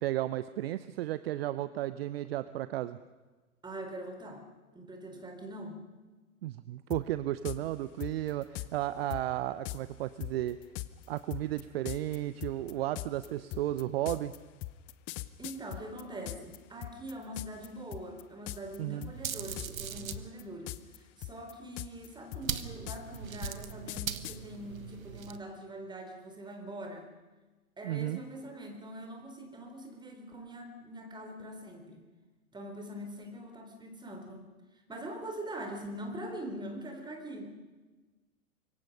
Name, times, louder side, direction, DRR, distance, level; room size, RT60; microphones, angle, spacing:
voice 1, 0.0-3.0 6.4-10.6 11.1-14.3 18.8-19.1 27.8-28.2, right 14 dB, 45° right, 14 dB, 0.8 m, -34 dB
voice 2, 3.6-4.4 4.7-5.8 15.4-27.1 27.8-32.0 32.5-34.5 34.9-37.5, right 1 dB, 10° right, 4 dB, 4.1 m, -43 dB
sound 1, 6.9-7.0 7.5-7.6 8.0-8.7 9.1-9.2 9.7-9.8 10.2-16.6 16.8-17.7 17.9-18.2 18.5-18.8 19.0-19.9 20.1-21.0 21.2-24.4, left 18 dB, 25° left, 0.8 m, -40 dB
sound 2, 19.1-20.3 22.4-25.4, right 8 dB, 70° right, 1.4 m, -39 dB
25.5 x 23.0 x 5.5 m, 1.3 s
figure-of-eight pair, 100°, 43 cm